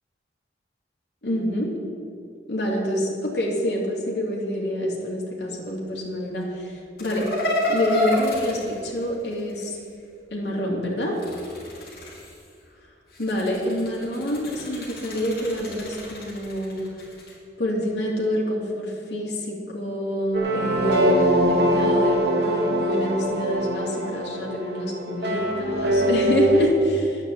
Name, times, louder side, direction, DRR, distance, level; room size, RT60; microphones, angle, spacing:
voice 1, 1.2-1.7 2.5-7.3 7.7-9.8 10.3-11.2 13.2-16.8 17.6-27.2, equal, 75° left, -3 dB, 2.8 m, -27 dB
sound 1, 7.0-9.7 11.0-12.5 13.1-17.3, left 1 dB, 55° left, 3.1 m, -30 dB
sound 2, 20.3-26.7, right 1 dB, 65° right, 1.6 m, -22 dB
10.5 x 8.8 x 8.6 m, 2.4 s
head